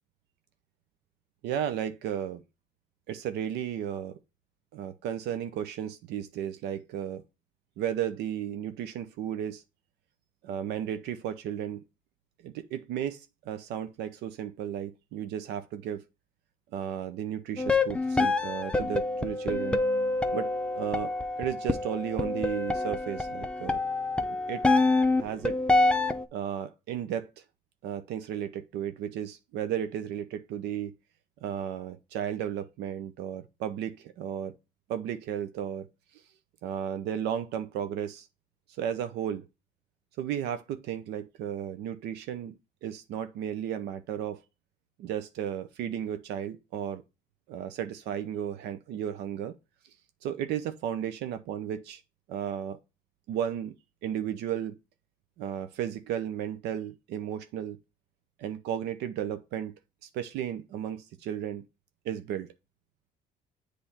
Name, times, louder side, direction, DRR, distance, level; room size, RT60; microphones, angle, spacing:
voice 1, 1.4-2.4 3.1-4.2 4.7-7.2 7.8-9.6 10.4-11.8 12.4-16.0 16.7-19.8 20.3-20.5 20.8-23.8 24.3-24.6 25.2-25.6 26.3-27.3 27.8-30.9 31.4-34.5 34.9-35.9 36.6-38.3 38.8-39.4 40.2-44.4 45.0-47.0 47.5-49.5 50.2-52.0 52.3-52.8 53.3-53.7 54.0-54.8 55.4-57.8 58.4-59.7 60.1-61.6 62.0-62.5, right 9 dB, 85° right, 0.8 m, -34 dB
sound 1, 17.6-26.2, left 2 dB, 5° left, 0.7 m, -27 dB
7.9 x 3.4 x 4.2 m
cardioid pair, 110°, 17 cm